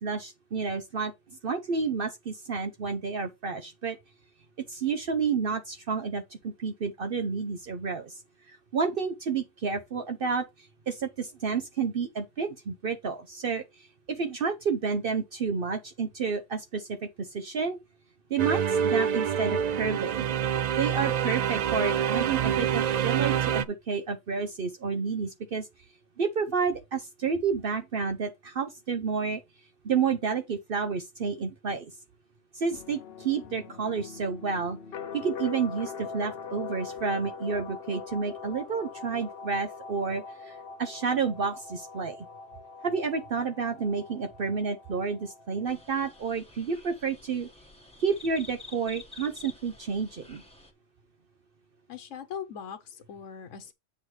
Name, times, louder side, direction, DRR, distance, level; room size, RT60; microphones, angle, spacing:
voice 1, 0.0-1.1 1.4-4.0 4.7-8.2 8.5-13.6 14.1-17.8 18.3-20.3 20.8-25.7 26.2-29.4 29.8-31.9 32.5-34.8 35.1-42.2 42.8-47.5 48.0-50.4, right 5 dB, 55° right, 0.9 m, -30 dB
sound 1, 18.4-23.6, right 8 dB, 75° right, 0.3 m, -26 dB
sound 2, 32.7-46.3, left 5 dB, 60° left, 0.8 m, -42 dB
sound 3, 45.7-50.7, left 3 dB, 5° left, 1.4 m, -49 dB
voice 2, 51.9-53.7, left 7 dB, 80° left, 1.1 m, -40 dB
8.0 x 5.4 x 3.2 m
omnidirectional pair, 1.3 m